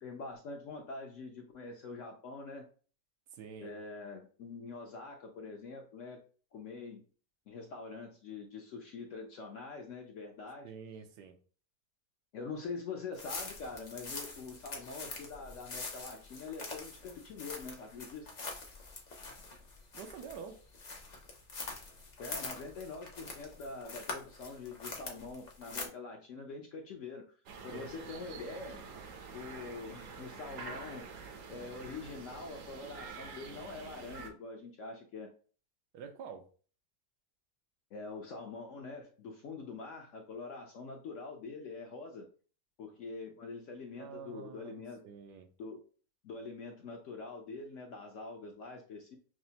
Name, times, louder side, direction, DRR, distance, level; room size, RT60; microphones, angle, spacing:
voice 1, 0.0-2.7 3.6-6.2 6.5-7.0 7.5-10.7 12.3-18.3 22.2-27.3 27.6-28.9 29.3-31.1 31.5-35.3 37.9-42.3 42.8-45.0 45.6-45.8 46.2-49.2, left 4 dB, 70° left, 0.7 m, -44 dB
voice 2, 3.3-3.7 10.6-11.4 19.9-20.6 27.7-27.9 35.9-36.5 44.0-44.7 45.0-45.5, right 6 dB, 85° right, 1.2 m, -47 dB
sound 1, 13.1-25.9, left 3 dB, 90° left, 0.3 m, -44 dB
sound 2, 27.5-34.3, right 4 dB, 65° right, 0.9 m, -47 dB
6.0 x 2.1 x 2.7 m
omnidirectional pair, 1.8 m